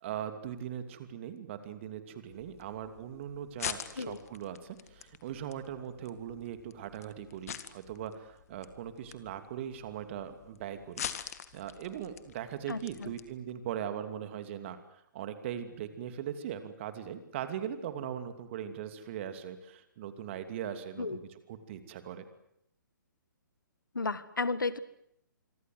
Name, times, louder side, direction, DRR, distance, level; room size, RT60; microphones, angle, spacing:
voice 1, 0.0-14.8 15.1-21.2 21.5-22.2, right 9 dB, 35° right, 9 dB, 2.8 m, -40 dB
sound 1, 2.3-13.4, left 9 dB, 45° left, 1.9 m, -45 dB
voice 2, 12.7-13.1 21.0-21.2 23.9-24.8, left 3 dB, 75° left, 16 dB, 1.6 m, -33 dB
26.0 x 24.0 x 8.0 m, 0.77 s
figure-of-eight pair, 130°, 11 cm